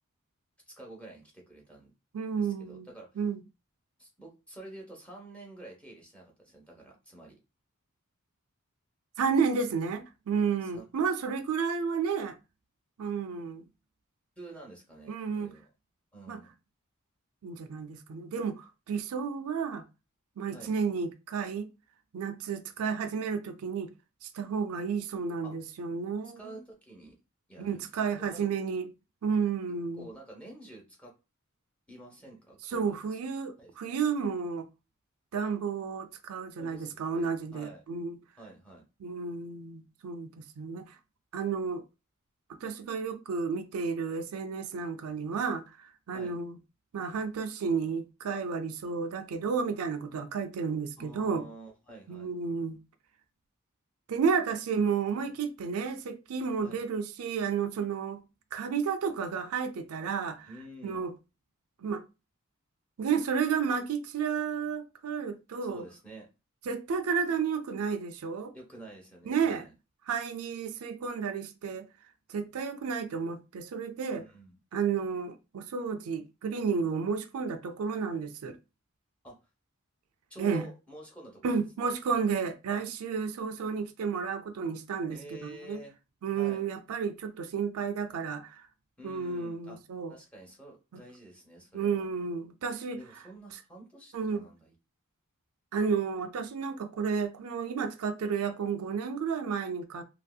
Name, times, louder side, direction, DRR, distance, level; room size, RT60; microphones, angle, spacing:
voice 1, 0.7-1.9 2.4-3.1 4.0-7.4 10.6-10.8 14.4-15.7 16.1-16.5 20.5-20.7 25.4-25.5 26.4-27.2 27.5-27.9 28.2-28.5 30.0-31.1 31.9-33.2 33.6-33.7 36.6-37.8 38.4-38.8 46.1-46.4 51.0-52.3 55.1-55.3 56.6-56.8 60.5-61.0 65.6-66.3 68.5-69.7 74.2-74.6 79.2-79.4 80.3-81.9 82.7-82.8 85.1-85.9 86.3-86.7 89.0-89.8 90.1-92.1 92.7-94.7, right 1 dB, 5° left, 0.9 m, -49 dB
voice 2, 2.1-2.9 3.2-3.4 9.2-12.4 13.0-13.6 15.1-15.5 16.3-16.4 17.4-19.8 20.4-21.7 22.1-23.9 24.2-26.6 27.6-28.9 29.2-30.1 32.7-34.7 35.3-38.2 39.0-41.0 41.3-41.8 42.6-46.6 46.9-51.4 52.1-52.8 54.1-58.2 58.5-60.5 60.8-61.1 61.8-62.0 63.0-65.9 66.7-68.5 69.3-69.6 70.1-71.9 72.3-74.2 74.7-78.6 80.4-80.7 81.4-85.8 86.2-88.6 89.0-90.1 91.7-93.0 94.1-94.5 95.7-100.0, right 6 dB, 80° right, 0.4 m, -32 dB
2.9 x 2.7 x 2.3 m
head